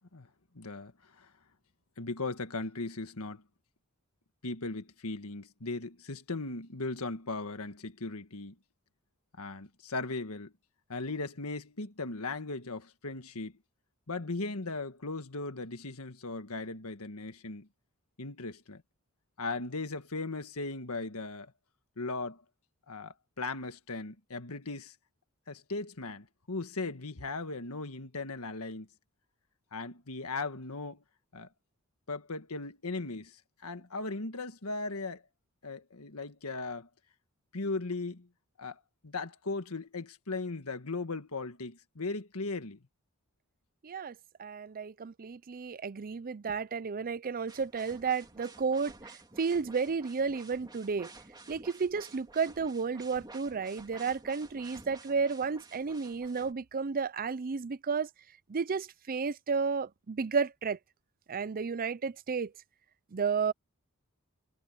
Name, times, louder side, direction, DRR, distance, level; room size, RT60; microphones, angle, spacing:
voice 1, 0.5-0.9 1.2-1.3 2.0-3.4 4.4-8.5 9.4-10.5 10.9-13.5 14.1-17.7 18.2-18.8 19.4-21.5 22.0-22.4 22.9-24.9 25.5-28.9 29.7-31.0 31.3-31.5 32.1-33.4 33.6-35.2 35.6-36.9 37.5-38.3 38.6-42.8, left 3 dB, 70° left, 1.7 m, -37 dB
voice 2, 43.8-44.1 44.4-48.9 49.4-51.1 51.5-58.1 58.5-60.8 61.3-62.5 63.1-63.5, right 5 dB, 40° right, 0.5 m, -32 dB
sound 1, 47.5-56.5, right 2 dB, 20° right, 2.8 m, -52 dB
head